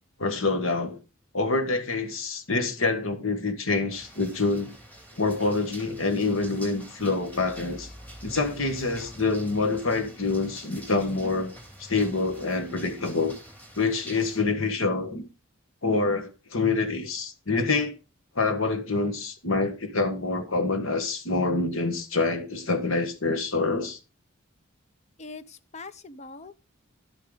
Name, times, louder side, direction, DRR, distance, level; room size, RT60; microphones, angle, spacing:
voice 1, 0.2-1.0 1.3-4.7 5.2-7.9 8.2-13.4 13.8-15.2 15.8-17.9 18.3-24.0, left 3 dB, 70° left, 1.5 m, -26 dB
sound 1, 3.9-14.4, right 1 dB, 10° left, 2.3 m, -46 dB
voice 2, 25.2-26.6, left 3 dB, 30° left, 0.6 m, -42 dB
11.5 x 8.4 x 3.8 m
head